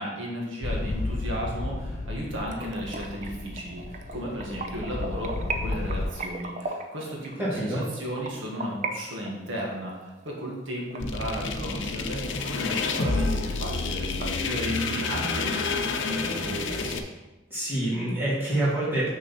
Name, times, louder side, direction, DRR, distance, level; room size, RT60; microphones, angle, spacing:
voice 1, 0.0-12.2 12.5-17.0, equal, 85° right, -2 dB, 1.7 m, -34 dB
sound 1, 0.6-6.1, left 2 dB, 35° left, 0.4 m, -33 dB
sound 2, 2.5-8.9 9.2-11.8 12.2-12.3 12.7-12.8 13.1-13.2 13.5-14.2, right 3 dB, 40° right, 0.6 m, -37 dB
voice 2, 7.4-7.9 17.5-19.1, right 1 dB, 10° right, -9 dB, 2.8 m, -26 dB
sound 3, 11.0-17.0, left 3 dB, 75° left, 0.7 m, -29 dB
6.6 x 6.2 x 4.3 m, 1.1 s
head